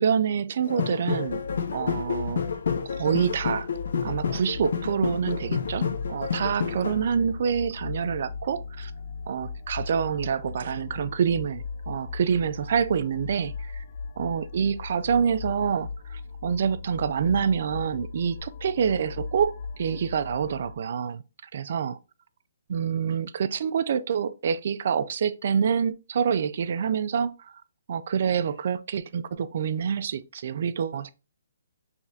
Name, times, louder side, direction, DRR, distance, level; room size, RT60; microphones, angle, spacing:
voice 1, 0.0-1.4 1.7-2.4 3.0-3.7 4.0-8.9 9.3-13.8 14.2-21.2 21.5-21.9 22.7-27.3 27.9-31.1, right 7 dB, 50° right, 0.4 m, -27 dB
sound 1, 0.6-7.0, left 6 dB, 65° left, 0.7 m, -29 dB
sound 2, 1.3-20.7, left 4 dB, 45° left, 0.3 m, -38 dB
4.8 x 3.3 x 2.7 m
hypercardioid pair, 165°, 0 cm